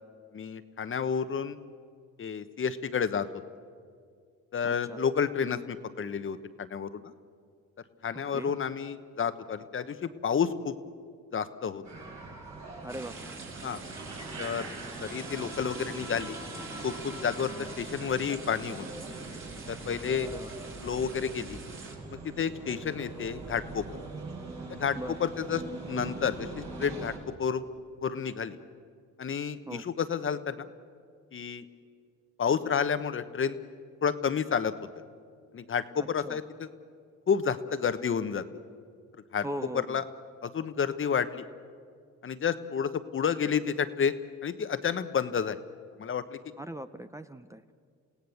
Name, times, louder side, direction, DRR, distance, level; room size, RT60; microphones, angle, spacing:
voice 1, 0.3-1.6 2.2-3.3 4.5-7.1 8.0-10.7 11.3-11.8 13.6-13.8 14.4-14.7 15.0-16.4 16.8-18.8 19.7-20.3 20.8-21.6 22.2-23.8 24.7-25.6 25.9-27.1 27.4-27.6 28.0-28.6 29.2-30.7 31.3-31.6 32.4-33.5 34.0-34.7 35.5-36.7 37.3-38.4 39.3-39.4 39.7-40.0 40.4-41.4 42.2-44.1 44.4-45.6 46.0-46.4, left 7 dB, 45° left, 11 dB, 1.1 m, -30 dB
voice 2, 4.6-5.0 8.1-8.5 12.8-13.3 20.2-20.5 25.0-25.2 29.7-29.8 36.0-36.4 39.4-40.0 46.6-47.6, right 1 dB, 10° right, 10 dB, 0.7 m, -40 dB
sound 1, 11.8-27.2, right 3 dB, 65° right, 7.0 m, -43 dB
sound 2, 12.9-22.0, right 3 dB, 45° right, 4.0 m, -43 dB
28.5 x 17.0 x 7.1 m, 2.1 s
cardioid pair, 90°, 30 cm